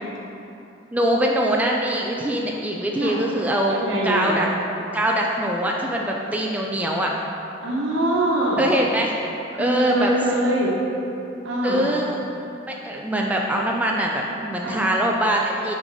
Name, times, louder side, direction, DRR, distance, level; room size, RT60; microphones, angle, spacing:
voice 1, 0.9-3.8 4.0-4.5 4.9-7.1 8.6-9.1 9.6-10.1 11.6-12.2 12.8-15.7, right 1 dB, 10° right, -1 dB, 0.3 m, -23 dB
voice 2, 3.7-4.4 7.6-8.7 9.5-10.8 11.4-11.8 14.6-14.8, right 1 dB, 80° right, -4 dB, 1.3 m, -23 dB
6.3 x 3.8 x 4.8 m, 2.9 s
head